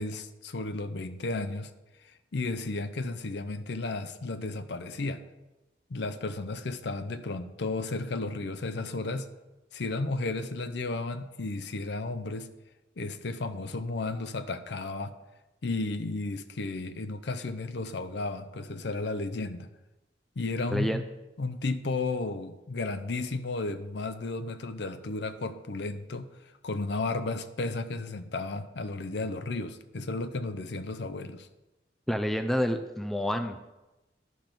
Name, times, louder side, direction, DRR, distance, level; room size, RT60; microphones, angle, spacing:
voice 1, 0.0-1.7 2.3-5.2 5.9-9.3 9.7-12.5 13.0-15.1 15.6-19.7 20.4-21.0 21.4-26.3 26.6-31.5, left 3 dB, 65° left, 11 dB, 0.6 m, -33 dB
voice 2, 20.7-21.0 32.1-33.7, equal, ahead, 6 dB, 0.4 m, -29 dB
11.0 x 5.2 x 6.0 m, 1.0 s
head